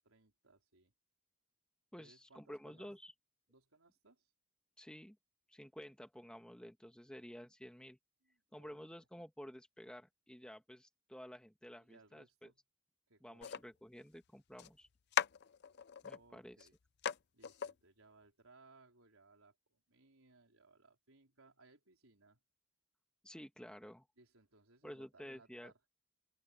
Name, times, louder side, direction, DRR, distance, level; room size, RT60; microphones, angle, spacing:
voice 1, 0.0-0.9 2.0-2.9 3.5-4.3 8.2-8.8 11.8-12.6 13.1-13.7 16.1-16.7 17.3-22.4 24.2-25.9, right 3 dB, 75° right, 4.3 m, -66 dB
voice 2, 1.9-3.1 4.8-5.2 5.5-8.0 8.5-12.5 13.2-14.9 16.0-16.7 23.2-24.1 24.8-25.7, equal, 5° left, 1.5 m, -52 dB
sound 1, 13.4-13.6 14.6-14.7 15.1-16.2 16.6-16.7 17.0-17.2 17.4-17.7, left 8 dB, 50° left, 0.5 m, -38 dB
open air
head